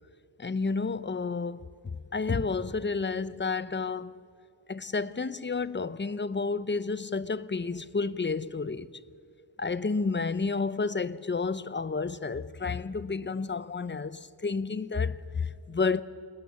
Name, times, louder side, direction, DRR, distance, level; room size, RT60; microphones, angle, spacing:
voice 1, 0.4-4.2 4.7-8.9 9.6-16.0, left 4 dB, 25° left, 0.7 m, -31 dB
28.5 x 20.5 x 7.0 m
wide cardioid pair, 115°, 46 cm